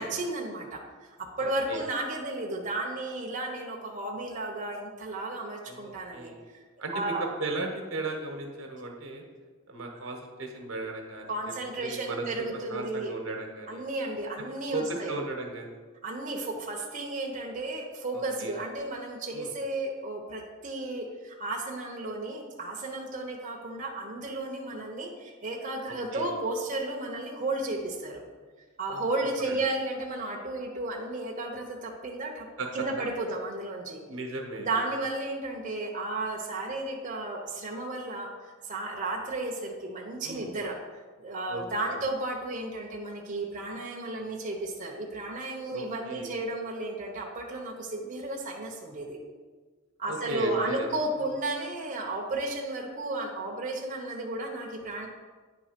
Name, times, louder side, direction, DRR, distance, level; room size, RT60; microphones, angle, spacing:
voice 1, 0.0-6.3 6.9-7.2 11.3-13.1 13.7-15.1 16.0-28.2 28.8-32.5 32.7-34.0 34.6-38.3 38.7-40.8 41.2-49.2 50.0-55.1, right 2 dB, 40° right, -1 dB, 0.8 m, -33 dB
voice 2, 1.4-1.8 5.7-6.4 6.8-7.1 7.4-9.2 9.7-11.4 11.8-13.8 14.7-15.8 18.1-18.5 19.3-19.5 25.9-26.3 28.9-29.1 29.4-29.6 32.6-32.7 34.1-34.7 40.2-40.5 41.5-41.6 45.7-46.3 50.1-50.9, right 2 dB, 75° right, 3 dB, 1.1 m, -36 dB
9.3 x 3.4 x 5.1 m, 1.4 s
head